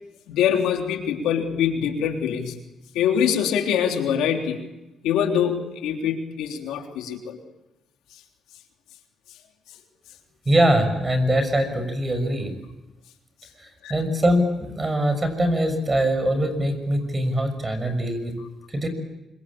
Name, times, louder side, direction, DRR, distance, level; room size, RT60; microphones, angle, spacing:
voice 1, 0.3-2.5 3.0-4.6 5.0-7.4 13.8-13.9, left 8 dB, 90° left, 3 dB, 3.4 m, -24 dB
voice 2, 10.5-12.5 13.6-18.3 18.7-18.9, right 1 dB, 25° right, 9 dB, 6.4 m, -22 dB
25.5 x 24.5 x 8.6 m, 0.95 s
cardioid pair, 90°, 0 cm